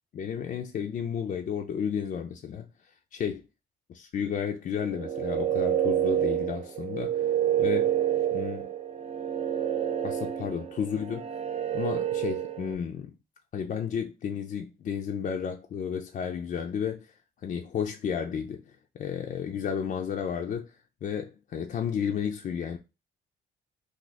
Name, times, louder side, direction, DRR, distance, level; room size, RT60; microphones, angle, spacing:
voice 1, 0.1-3.4 3.9-7.3 7.6-8.0 8.3-8.7 10.0-11.4 11.7-13.2 13.5-17.1 17.4-20.7 21.0-22.8, left 7 dB, 45° left, 0.4 m, -32 dB
sound 1, 4.9-12.8, right 10 dB, 30° right, 0.4 m, -28 dB
2.4 x 2.4 x 4.0 m
cardioid pair, 90°, 20 cm